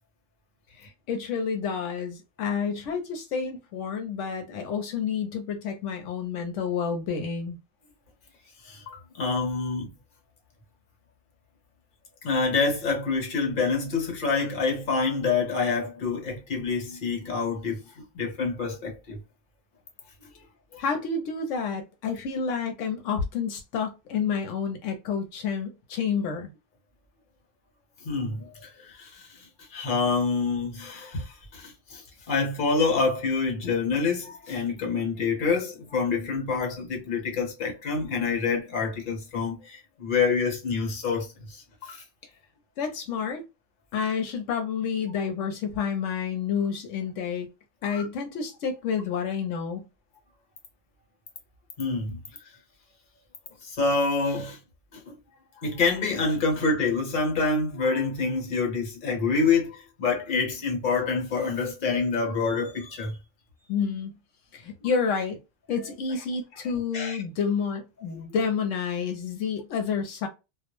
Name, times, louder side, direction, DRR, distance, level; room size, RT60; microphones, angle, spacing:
voice 1, 0.7-7.6 20.8-26.5 42.8-43.4 43.9-47.5 47.8-49.8 63.7-64.1 64.5-65.4 65.7-70.3, left 6 dB, 85° left, 0.9 m, -29 dB
voice 2, 8.6-9.9 12.2-19.2 20.7-20.8 28.0-42.0 47.9-48.0 51.8-52.2 53.6-54.6 54.9-55.2 55.6-63.2 66.9-67.2, left 4 dB, 45° left, 1.0 m, -27 dB
2.3 x 2.0 x 2.9 m
omnidirectional pair, 1.2 m